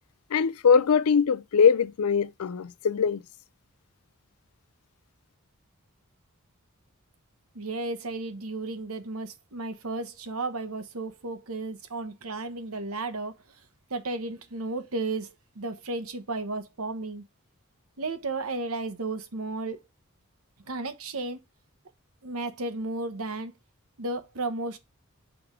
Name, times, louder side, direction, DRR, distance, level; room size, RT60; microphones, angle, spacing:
voice 1, 0.3-3.2, left 6 dB, 80° left, 0.5 m, -22 dB
voice 2, 7.5-13.4 13.9-17.2 18.0-19.8 20.7-21.4 22.2-23.5 24.0-24.8, right 2 dB, 80° right, 1.1 m, -33 dB
6.1 x 3.5 x 4.8 m
head